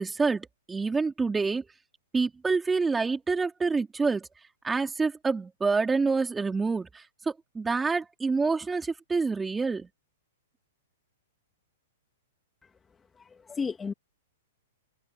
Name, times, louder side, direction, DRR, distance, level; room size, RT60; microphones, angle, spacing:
voice 1, 0.0-1.7 2.1-4.3 4.6-9.9, right 4 dB, 10° right, 3.7 m, -27 dB
voice 2, 13.2-13.9, left 5 dB, 15° left, 2.5 m, -33 dB
hypercardioid pair, 140°, 0 cm